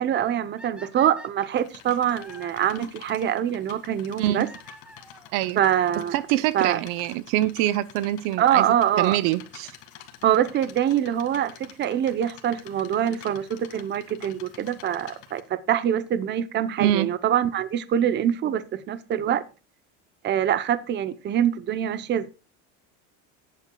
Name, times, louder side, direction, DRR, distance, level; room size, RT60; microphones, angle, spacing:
voice 1, 0.0-4.5 5.6-6.1 6.5-6.8 8.4-9.2 10.2-19.4 20.2-22.3, right 10 dB, 30° right, 0.7 m, -24 dB
sound 1, 0.6-2.8 4.3-5.3 6.3-6.4 7.0-7.1 7.3-7.4 9.3-9.6 12.4-12.5 13.5-13.6 15.1-15.2 15.4-15.5 15.8-15.9 16.1-16.2 16.3-16.4 16.6-16.7 16.9-17.0, right 1 dB, 5° right, 1.4 m, -47 dB
sound 2, 1.5-15.4, left 10 dB, 55° left, 1.8 m, -48 dB
voice 2, 6.1-9.7 16.8-17.1, right 14 dB, 65° right, 0.7 m, -25 dB
18.5 x 8.2 x 2.3 m
supercardioid pair, 130°, 36 cm